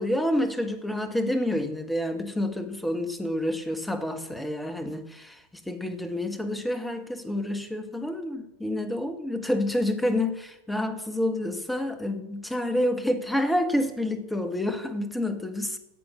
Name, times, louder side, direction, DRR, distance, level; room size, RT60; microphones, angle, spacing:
voice 1, 0.0-15.8, left 1 dB, 5° left, 1.4 m, -28 dB
15.0 x 7.9 x 5.6 m
figure-of-eight pair, 90°, 0 cm